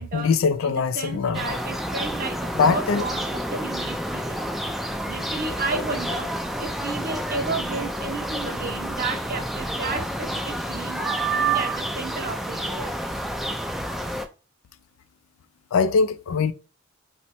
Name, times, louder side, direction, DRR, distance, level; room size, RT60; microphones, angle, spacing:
voice 1, 0.1-1.4 2.6-3.0 5.7-5.8 15.7-16.5, left 5 dB, 85° left, 0.4 m, -22 dB
voice 2, 0.6-4.5 5.1-6.3 6.6-13.1, right 4 dB, 45° right, 0.7 m, -32 dB
sound 1, 1.3-14.3, right 1 dB, ahead, 0.3 m, -29 dB
3.0 x 2.2 x 4.2 m
head